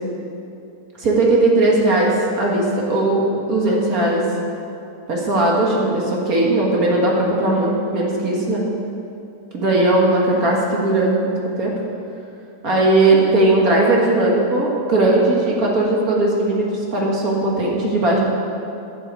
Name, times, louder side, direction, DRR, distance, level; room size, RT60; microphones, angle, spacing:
voice 1, 1.0-4.2 5.1-8.6 9.5-11.7 12.6-18.2, right 2 dB, 65° right, -3 dB, 2.3 m, -18 dB
9.7 x 7.7 x 8.3 m, 2.6 s
omnidirectional pair, 1.7 m